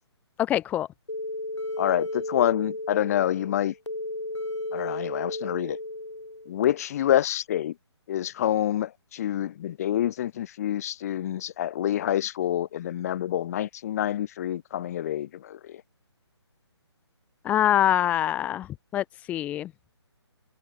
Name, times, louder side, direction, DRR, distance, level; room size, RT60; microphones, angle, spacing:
voice 1, 0.4-0.9 17.4-19.7, left 11 dB, 10° left, 0.8 m, -25 dB
sound 1, 1.1-6.7, left 2 dB, 85° left, 3.6 m, -34 dB
voice 2, 1.8-3.7 4.7-5.8 6.5-7.7 8.1-15.8, left 11 dB, 35° left, 5.0 m, -27 dB
figure-of-eight pair, 145°, 15 cm